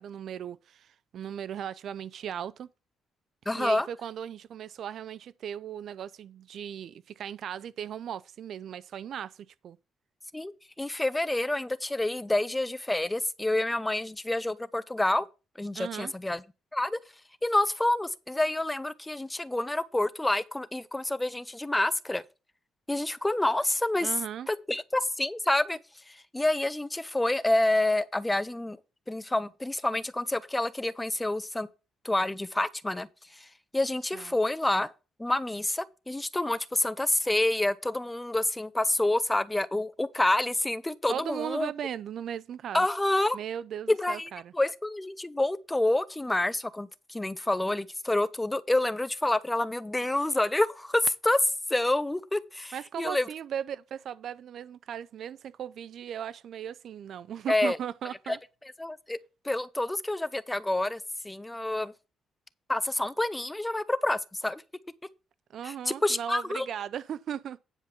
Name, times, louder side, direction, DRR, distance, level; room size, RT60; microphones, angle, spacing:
voice 1, 0.0-2.7 3.5-9.8 15.7-16.1 24.0-24.5 34.1-34.3 41.1-42.9 43.3-44.5 52.7-58.4 65.5-67.6, right 9 dB, 65° right, 0.4 m, -37 dB
voice 2, 3.5-3.9 10.3-15.3 15.6-16.4 16.7-17.0 17.4-22.2 22.9-24.1 24.5-25.8 26.1-28.8 29.1-31.7 32.0-34.9 35.2-41.7 42.7-43.4 43.9-53.3 57.5-57.8 58.3-58.4 58.8-59.2 59.4-61.9 62.7-64.6 65.6-65.7 66.0-66.7, left 1 dB, 10° left, 0.6 m, -28 dB
9.9 x 5.1 x 5.6 m
cardioid pair, 90°, 0 cm